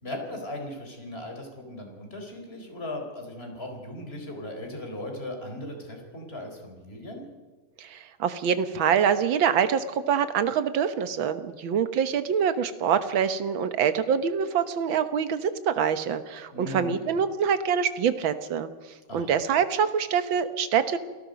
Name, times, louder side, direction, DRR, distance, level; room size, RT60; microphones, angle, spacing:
voice 1, 0.0-7.3 16.5-17.0 19.1-19.3, left 1 dB, 25° left, 3 dB, 4.4 m, -38 dB
voice 2, 7.8-18.7 19.1-21.0, right 7 dB, 65° right, 11 dB, 1.9 m, -25 dB
29.0 x 18.5 x 5.3 m, 1.4 s
omnidirectional pair, 2.4 m